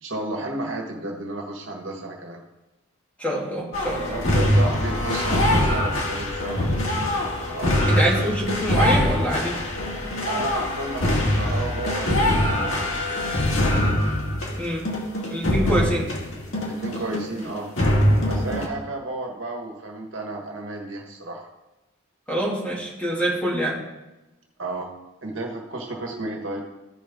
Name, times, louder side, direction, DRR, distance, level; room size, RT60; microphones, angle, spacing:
voice 1, 0.0-2.4 4.0-6.7 7.5-8.1 8.8-9.0 10.3-12.8 16.5-17.7 18.3-21.5 24.6-24.9 25.2-26.6, right 2 dB, 70° right, 0 dB, 1.4 m, -32 dB
voice 2, 3.2-4.1 7.9-9.5 14.6-14.9 15.3-16.1 22.3-23.8, right 1 dB, 5° left, -5 dB, 2.2 m, -25 dB
sound 1, 3.7-17.5 17.8-18.7, left 1 dB, 75° left, 1.8 m, -23 dB
14.5 x 5.2 x 3.6 m, 1.0 s
head